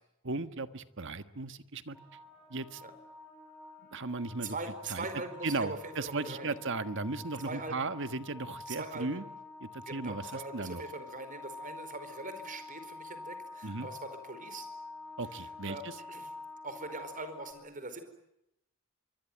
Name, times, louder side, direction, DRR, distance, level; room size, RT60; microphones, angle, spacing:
voice 1, 0.2-2.0 2.5-2.8 3.9-4.5 4.9-5.1 5.4-9.2 9.6-10.8 13.6-13.9 15.2-16.0, right 3 dB, 60° right, 11 dB, 1.5 m, -36 dB
sound 1, 1.9-17.5, left 3 dB, 5° left, 5.7 m, -48 dB
voice 2, 4.4-6.6 7.4-7.9 8.7-9.2 9.8-14.7 15.4-16.3 16.6-18.0, right 3 dB, 40° right, 10 dB, 4.8 m, -42 dB
25.0 x 24.5 x 9.3 m, 0.84 s
head